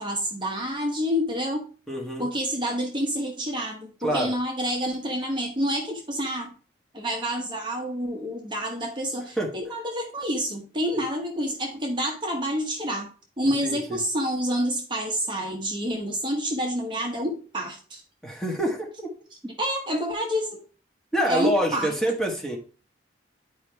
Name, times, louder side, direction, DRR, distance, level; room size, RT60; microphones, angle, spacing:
voice 1, 0.0-1.7 2.2-6.5 6.9-13.1 13.4-18.0 19.6-20.6 21.3-21.9, equal, 25° right, 1 dB, 1.1 m, -28 dB
voice 2, 1.9-2.3 4.0-4.3 9.4-9.5 13.6-14.0 18.2-18.9 21.1-22.6, equal, ahead, -1 dB, 1.4 m, -26 dB
9.8 x 4.9 x 3.4 m, 0.37 s
head